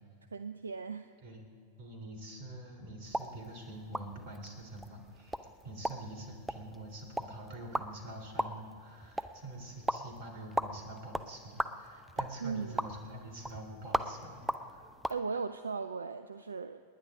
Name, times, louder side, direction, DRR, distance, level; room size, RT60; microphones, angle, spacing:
voice 1, 0.3-1.1 12.4-12.8 15.1-16.8, right 5 dB, 75° right, 11 dB, 0.4 m, -37 dB
voice 2, 1.8-15.4, right 1 dB, 50° right, 4 dB, 3.4 m, -46 dB
sound 1, 3.0-15.2, right 1 dB, 5° right, 0.6 m, -39 dB
28.5 x 10.5 x 3.8 m, 2.3 s
figure-of-eight pair, 90°, 0 cm